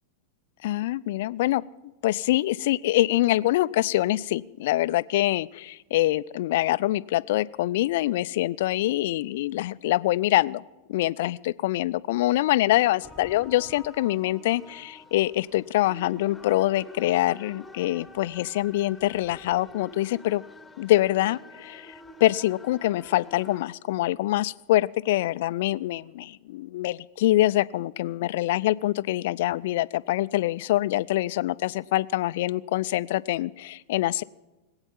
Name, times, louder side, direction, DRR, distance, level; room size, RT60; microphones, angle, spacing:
voice 1, 0.6-1.6 2.0-10.6 10.9-20.4 20.8-34.2, left 16 dB, 55° left, 18 dB, 0.4 m, -25 dB
sound 1, 13.0-23.6, left 2 dB, 5° left, 1.2 m, -47 dB
20.0 x 8.8 x 7.3 m, 1.1 s
figure-of-eight pair, 90°, 0 cm